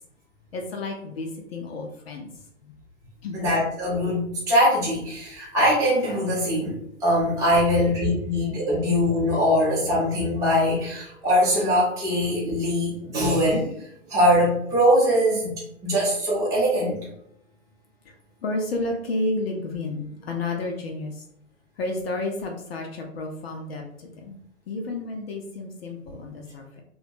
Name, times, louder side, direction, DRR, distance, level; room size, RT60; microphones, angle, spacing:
voice 1, 0.5-2.3 2.6-2.7 3.2-3.4 18.1-18.2 18.4-21.2 21.8-24.4 24.7-26.8, left 2 dB, 45° left, 1 dB, 0.5 m, -31 dB
voice 2, 3.3-16.9, equal, 10° right, -8 dB, 0.7 m, -22 dB
2.8 x 2.2 x 2.6 m, 0.74 s
hypercardioid pair, 125°, 42 cm